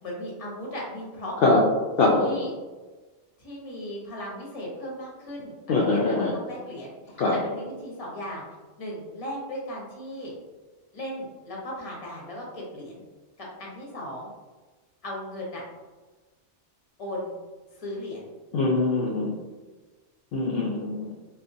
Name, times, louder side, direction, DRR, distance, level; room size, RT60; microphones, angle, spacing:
voice 1, 0.0-1.3 2.1-2.5 3.4-8.4 8.8-10.3 10.9-13.0 13.4-14.3 15.0-15.6 17.0-17.3 17.7-18.3, equal, 35° left, -3 dB, 0.8 m, -37 dB
voice 2, 2.0-2.4 5.7-6.3 7.2-7.4 18.5-19.3 20.3-21.1, left 3 dB, 65° left, -3 dB, 0.7 m, -22 dB
3.6 x 2.5 x 2.6 m, 1.3 s
omnidirectional pair, 1.2 m